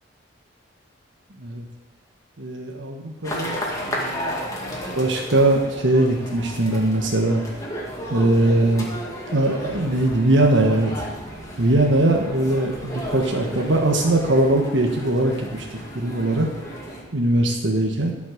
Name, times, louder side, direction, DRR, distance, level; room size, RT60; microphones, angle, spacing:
voice 1, 2.4-7.4 8.1-8.9 9.3-10.9 11.6-16.5 17.1-18.1, right 1 dB, 75° right, 1 dB, 1.4 m, -21 dB
sound 1, 3.2-17.0, equal, 20° left, 2.1 m, -33 dB
13.0 x 6.3 x 6.6 m, 1.1 s
head